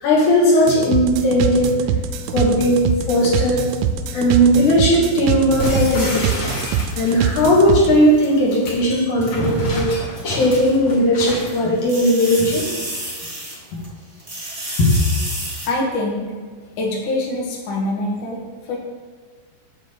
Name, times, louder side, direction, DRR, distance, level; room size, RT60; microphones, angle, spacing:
voice 1, 0.0-1.8 2.3-3.6 4.1-6.4 7.0-9.9 10.2-12.7 14.8-14.9, equal, 55° left, -4 dB, 2.7 m, -17 dB
sound 1, 0.7-7.9, right 8 dB, 80° right, 2.7 m, -24 dB
sound 2, 5.6-7.3 8.3-11.6, equal, 35° left, 1.9 m, -27 dB
sound 3, 6.6-8.4 9.5-9.6 11.5-13.9 14.2-15.7, right 1 dB, 25° right, 1.2 m, -31 dB
voice 2, 15.6-16.3 16.8-18.8, left 2 dB, 85° left, -3 dB, 1.1 m, -24 dB
8.2 x 4.7 x 7.3 m, 1.6 s
omnidirectional pair, 5.2 m